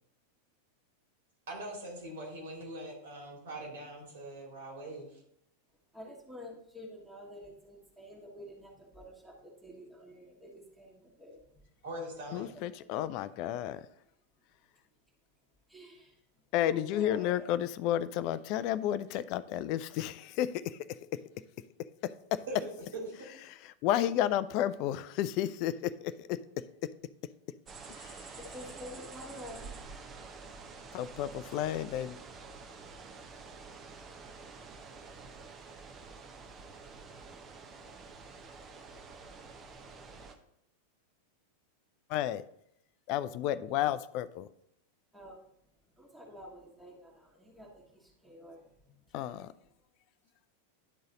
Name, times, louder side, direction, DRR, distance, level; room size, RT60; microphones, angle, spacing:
voice 1, 1.5-5.2 11.8-12.5 22.5-23.3, right 1 dB, 60° right, -1 dB, 2.4 m, -42 dB
voice 2, 5.9-11.4 15.7-16.2 16.6-17.5 28.4-29.9 45.1-45.4 45.9-49.4, equal, 5° right, -4 dB, 1.4 m, -49 dB
voice 3, 12.3-13.9 16.5-19.4 19.7-21.2 22.0-22.4 23.5-26.9 28.0-28.2 30.9-32.2 42.1-42.4 43.1-44.5 49.1-49.5, left 12 dB, 45° left, 15 dB, 0.3 m, -32 dB
sound 1, 27.7-40.3, right 4 dB, 25° right, 0.8 m, -48 dB
11.0 x 3.9 x 3.9 m, 0.77 s
figure-of-eight pair, 90°, 0 cm